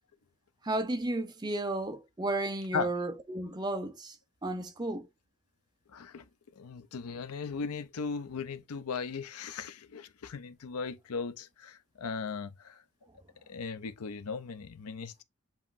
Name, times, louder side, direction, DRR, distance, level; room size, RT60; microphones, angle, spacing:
voice 1, 0.6-4.2 4.4-5.1, right 2 dB, 20° right, 0.4 m, -33 dB
voice 2, 5.9-6.2 6.6-12.8 13.5-15.2, left 5 dB, 85° left, 0.5 m, -37 dB
7.1 x 3.0 x 2.5 m
head